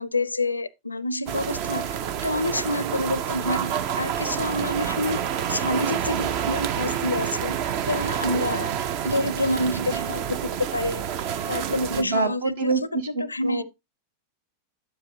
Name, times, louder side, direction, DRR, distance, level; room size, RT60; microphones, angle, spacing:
voice 1, 0.0-5.2 5.5-7.6 7.9-8.7 9.0-11.0 11.5-12.7 13.1-13.6, left 2 dB, 80° left, 0.4 m, -28 dB
sound 1, 1.3-12.0, right 9 dB, 45° right, 0.6 m, -28 dB
voice 2, 11.9-13.6, right 3 dB, 60° right, 1.4 m, -26 dB
9.4 x 7.3 x 2.8 m
figure-of-eight pair, 90°, 0 cm